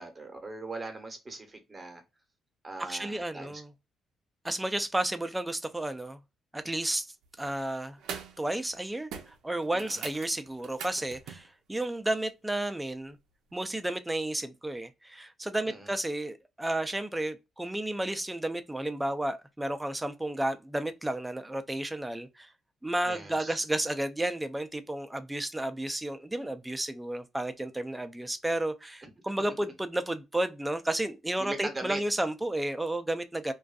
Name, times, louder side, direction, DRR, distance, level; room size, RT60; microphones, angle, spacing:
voice 1, 0.0-2.0 2.6-3.6 9.7-10.1 15.6-15.9 23.1-23.6 29.0-29.1 31.4-32.0, right 2 dB, 25° right, 0.8 m, -40 dB
voice 2, 2.9-3.7 4.4-6.2 6.5-7.1 7.4-8.0 8.4-13.2 13.5-22.5 22.8-33.5, right 1 dB, 10° right, 0.4 m, -32 dB
sound 1, 7.2-7.5 8.0-8.4 8.7-8.8 9.1-11.5 13.5-13.6, right 7 dB, 80° right, 0.5 m, -42 dB
2.5 x 2.3 x 2.3 m
cardioid pair, 90°, 0 cm